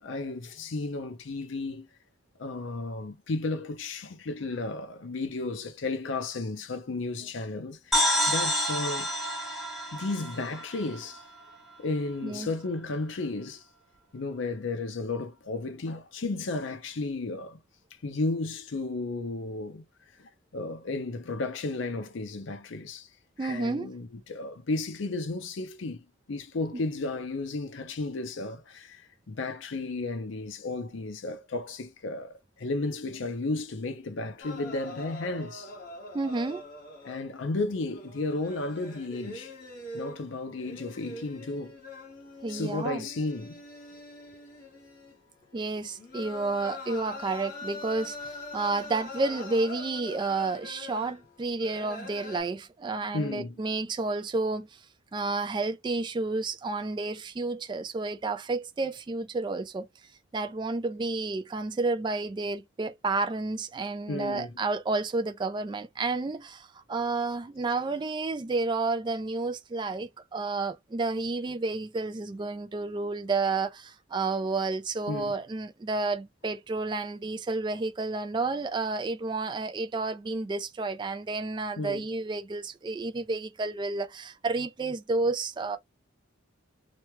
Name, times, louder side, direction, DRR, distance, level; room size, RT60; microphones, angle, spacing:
voice 1, 0.0-1.9 2.4-9.1 9.9-11.2 11.8-13.6 14.1-17.6 18.0-19.8 20.1-23.1 23.4-35.7 37.0-39.5 39.9-41.8 42.5-43.6 53.1-53.6 64.1-64.5 75.1-75.3 81.8-82.0, left 3 dB, 65° left, 0.6 m, -33 dB
sound 1, 7.9-11.5, equal, ahead, 1.0 m, -28 dB
voice 2, 23.4-23.9 36.1-36.7 42.4-43.0 45.5-54.8 55.1-59.9 60.3-85.8, right 3 dB, 25° right, 0.3 m, -31 dB
sound 2, 34.4-37.5 37.8-52.4, left 2 dB, 45° left, 1.4 m, -43 dB
3.1 x 2.2 x 2.9 m
head